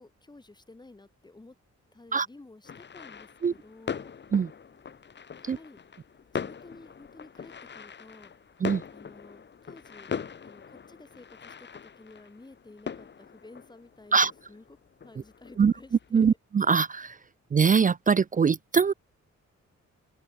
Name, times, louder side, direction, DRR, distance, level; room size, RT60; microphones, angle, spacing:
voice 1, 0.0-1.6 1.9-4.1 5.5-5.8 6.3-8.3 8.9-10.1 10.4-14.6 15.0-16.4, left 2 dB, 15° left, 3.5 m, -52 dB
sound 1, 2.6-16.1, left 6 dB, 35° left, 1.5 m, -41 dB
voice 2, 16.1-17.2 17.5-18.9, right 6 dB, 30° right, 0.4 m, -22 dB
open air
wide cardioid pair, 180°, 30 cm